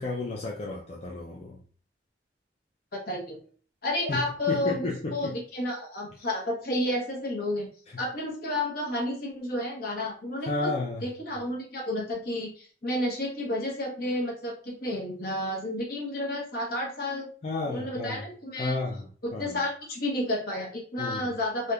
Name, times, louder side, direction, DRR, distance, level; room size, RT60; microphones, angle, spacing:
voice 1, 0.0-1.6 4.1-5.3 7.9-8.0 10.4-11.1 17.4-18.2 18.6-19.6 21.0-21.2, left 2 dB, 35° left, -2 dB, 0.4 m, -32 dB
voice 2, 2.9-3.4 3.8-7.7 8.0-10.7 11.0-17.3 17.7-18.8 19.2-21.7, left 1 dB, 55° left, 0 dB, 0.9 m, -31 dB
3.4 x 2.7 x 2.3 m, 0.43 s
head